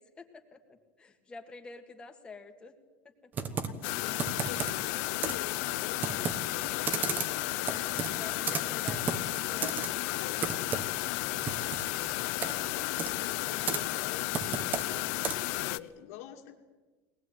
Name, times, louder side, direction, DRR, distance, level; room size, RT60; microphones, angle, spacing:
voice 1, 0.0-2.7 3.0-3.1 7.8-10.3, left 4 dB, 10° left, 5 dB, 1.9 m, -48 dB
Computer keyboard, 3.3-15.6, right 5 dB, 25° right, 1.2 m, -36 dB
voice 2, 3.5-8.1 10.0-10.7 11.8-16.6, left 11 dB, 80° left, 4 dB, 2.5 m, -48 dB
sound 1, 3.8-15.8, left 19 dB, 60° left, 0.7 m, -33 dB
22.5 x 19.5 x 9.3 m, 1.3 s
cardioid pair, 175°, 8 cm